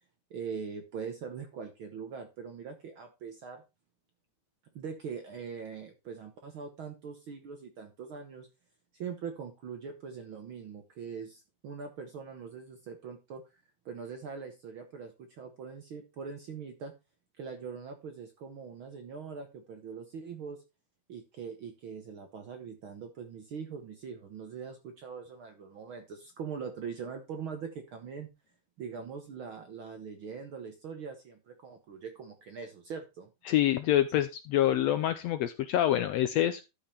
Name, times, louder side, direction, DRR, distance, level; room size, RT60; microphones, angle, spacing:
voice 1, 0.3-3.6 4.7-8.5 8.9-13.4 13.8-16.9 17.4-20.6 21.1-28.3 28.8-33.3, right 6 dB, 60° right, 6 dB, 1.4 m, -42 dB
voice 2, 33.4-36.6, left 12 dB, 75° left, 10 dB, 1.6 m, -26 dB
12.5 x 5.5 x 4.1 m, 0.26 s
omnidirectional pair, 3.5 m